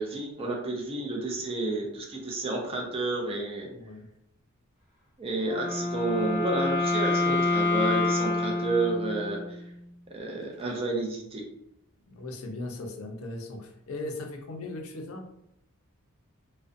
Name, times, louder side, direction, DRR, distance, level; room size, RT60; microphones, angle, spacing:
voice 1, 0.0-3.7 5.2-9.6 10.1-11.4, right 2 dB, 25° right, 0 dB, 0.4 m, -31 dB
voice 2, 3.7-4.1 12.1-15.2, left 2 dB, 70° left, 3 dB, 0.4 m, -38 dB
Wind instrument woodwind instrument, 5.4-9.6, left 2 dB, ahead, 0.9 m, -27 dB
2.4 x 2.1 x 2.5 m, 0.78 s
head